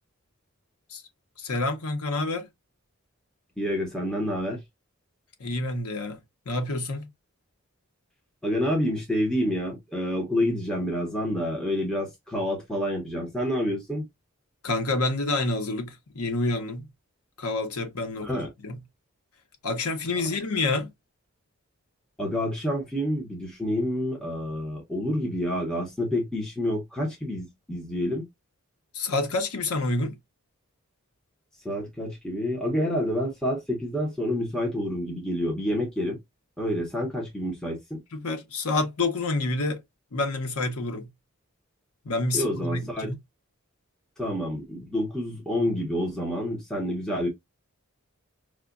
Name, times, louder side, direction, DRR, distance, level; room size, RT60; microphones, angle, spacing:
voice 1, 1.4-2.5 5.4-6.2 6.5-7.1 14.6-16.9 17.4-18.3 18.6-18.8 19.6-20.9 28.9-30.1 38.1-39.8 40.1-41.1 42.0-43.2, left 2 dB, 85° left, 0.9 m, -28 dB
voice 2, 3.6-4.6 8.4-14.1 18.2-18.5 22.2-28.2 31.6-36.2 36.6-38.0 42.3-43.1 44.2-47.3, equal, 5° left, 0.7 m, -28 dB
4.8 x 2.2 x 2.4 m
head